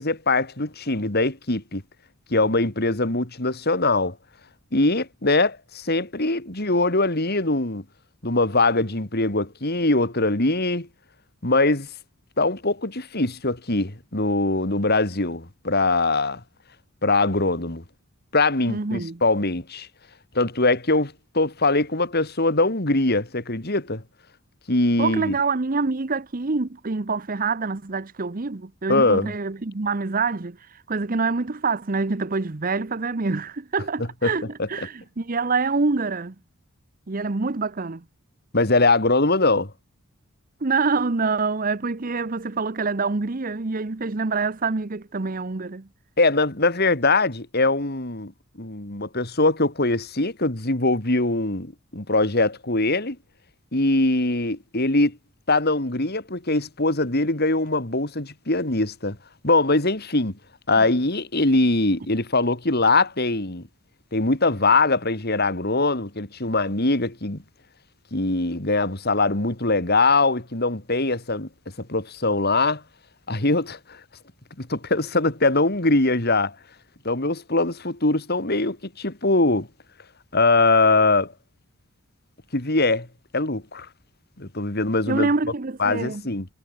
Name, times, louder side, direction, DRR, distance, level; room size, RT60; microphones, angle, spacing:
voice 1, 0.0-1.8 2.3-4.2 4.7-7.8 8.2-10.9 11.4-11.9 12.4-16.4 17.0-17.8 18.3-19.9 20.3-24.0 24.7-25.3 28.9-29.3 34.2-34.3 34.6-34.7 38.5-39.7 46.2-48.3 48.6-53.2 53.7-55.2 55.5-59.2 59.4-60.4 60.7-63.6 64.1-67.4 68.1-71.5 71.8-72.8 73.3-74.0 74.6-76.5 77.0-79.7 80.3-81.3 82.5-83.1 83.3-83.9 84.4-85.3 85.8-86.5, left 2 dB, 45° left, 3.0 m, -22 dB
voice 2, 18.7-19.2 25.0-36.3 37.1-38.0 40.6-45.9 60.7-60.8 85.1-86.2, right 4 dB, 40° right, 0.8 m, -26 dB
head